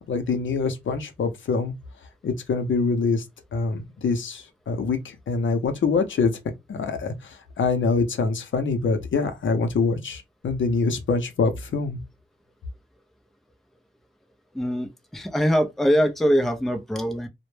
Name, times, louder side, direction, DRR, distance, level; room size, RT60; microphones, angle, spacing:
voice 1, 0.1-1.7 2.2-3.2 3.5-6.3 6.7-12.0, left 4 dB, 75° left, 0.6 m, -25 dB
voice 2, 14.5-17.3, equal, ahead, 0.4 m, -23 dB
2.1 x 2.0 x 3.1 m
wide cardioid pair, 100°, 20 cm